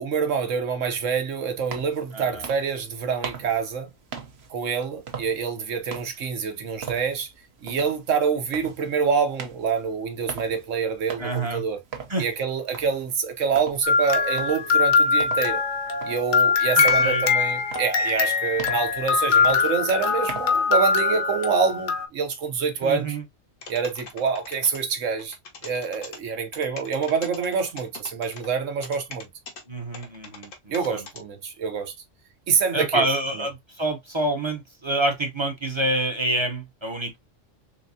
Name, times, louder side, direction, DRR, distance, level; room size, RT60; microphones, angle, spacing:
voice 1, 0.0-3.9 4.5-7.3 7.6-11.8 12.2-15.6 16.0-23.2 23.7-25.4 25.6-29.3 30.7-31.9 32.5-33.0, right 6 dB, 80° right, 1.3 m, -26 dB
sound 1, 1.5-20.7, right 6 dB, 60° right, 1.1 m, -41 dB
voice 2, 2.1-2.5 11.2-11.6 12.1-12.3 17.0-17.2 22.8-23.2 29.7-31.0 32.7-37.2, right 1 dB, 25° right, 0.7 m, -27 dB
sound 2, 13.8-22.1, left 5 dB, 70° left, 1.1 m, -22 dB
sound 3, 23.6-24.8 25.2-26.2 26.5-28.5 28.8-29.6 29.9-31.2, left 4 dB, 90° left, 1.4 m, -40 dB
4.0 x 3.4 x 2.7 m
omnidirectional pair, 1.3 m